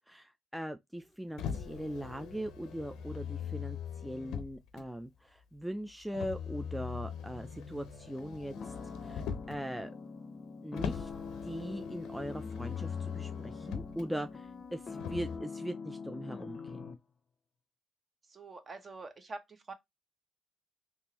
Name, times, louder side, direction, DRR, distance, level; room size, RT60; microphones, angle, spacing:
voice 1, 0.1-8.7 9.0-9.9 10.6-11.1 11.4-16.9, equal, 5° right, 0.3 m, -40 dB
Motor vehicle (road), 1.4-4.8 6.1-9.6 10.8-14.0 15.0-15.4, left 7 dB, 90° left, 0.6 m, -41 dB
sound 1, 8.5-17.0, left 4 dB, 45° left, 0.6 m, -44 dB
voice 2, 18.3-19.7, right 3 dB, 40° right, 0.8 m, -45 dB
3.5 x 2.5 x 2.9 m
cardioid pair, 90°, 0 cm